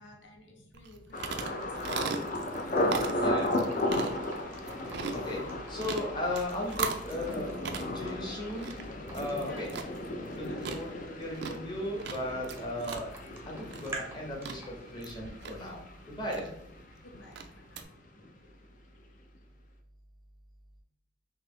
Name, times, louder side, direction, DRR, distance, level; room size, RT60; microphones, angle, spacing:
voice 1, 0.0-3.3 3.7-4.5 9.5-9.8 10.4-10.7 16.4-16.5 17.0-17.8, left 2 dB, 70° left, 1 dB, 0.8 m, -53 dB
sound 1, 0.7-17.8, right 5 dB, 55° right, 0.4 m, -40 dB
Thunder, 1.1-16.9 17.1-17.8 18.2-18.5, left 1 dB, 40° left, 0.4 m, -35 dB
sound 2, 2.5-6.7 7.1-9.6 10.5-10.6 12.3-12.6 12.9-14.7, right 3 dB, 10° right, 0.6 m, -46 dB
voice 2, 2.9-3.6 5.1-5.4 5.7-7.5 7.9-8.8 9.1-9.7 10.3-13.1 13.5-15.8 16.1-16.5, left 1 dB, 20° left, -1 dB, 0.9 m, -36 dB
3.8 x 2.8 x 3.1 m, 0.73 s
head